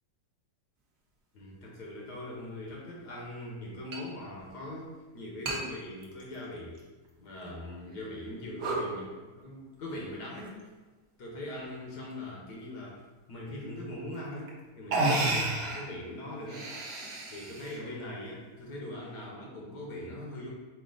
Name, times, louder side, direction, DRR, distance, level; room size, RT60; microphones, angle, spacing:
voice 1, 1.3-6.8 7.2-10.6 11.2-13.0 13.3-16.7 17.3-20.5, left 1 dB, 65° left, -3 dB, 1.5 m, -41 dB
sound 1, 2.2-2.3 3.9-4.0 4.4-4.5 5.5-5.6 6.0-6.8 7.3-7.4 8.0-8.3 8.6-8.9 10.1-10.6 11.4-11.8 13.7-13.8 14.5-14.6 14.9-15.9 16.4-17.8, right 2 dB, 50° right, 0.8 m, -32 dB
4.8 x 2.7 x 3.8 m, 1.2 s
omnidirectional pair, 1.9 m